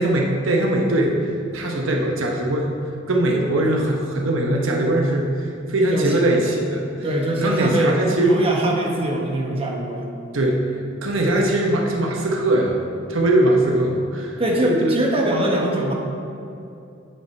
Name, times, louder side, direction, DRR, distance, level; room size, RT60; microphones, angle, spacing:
voice 1, 0.0-2.8 3.1-6.8 7.4-8.4 10.3-10.7 11.0-12.8 13.1-15.0, right 1 dB, 85° right, 0 dB, 1.0 m, -21 dB
voice 2, 5.9-6.5 7.0-8.0 8.2-10.1 14.4-15.9, right 1 dB, 30° right, -1 dB, 1.3 m, -23 dB
8.4 x 7.8 x 4.5 m, 2.6 s
head